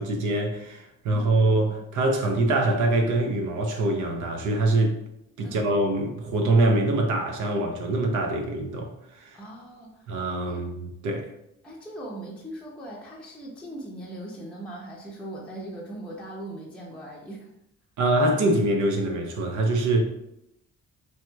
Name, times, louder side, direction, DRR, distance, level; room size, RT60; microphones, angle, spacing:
voice 1, 0.0-5.0 5.4-9.4 10.1-11.3 18.0-20.0, right 2 dB, 75° right, 0.6 m, -24 dB
voice 2, 1.1-1.6 5.4-5.6 9.3-10.1 10.5-10.6 11.6-17.5, right 1 dB, 5° left, 0.5 m, -39 dB
3.2 x 2.8 x 2.2 m
cardioid pair, 90°, 30 cm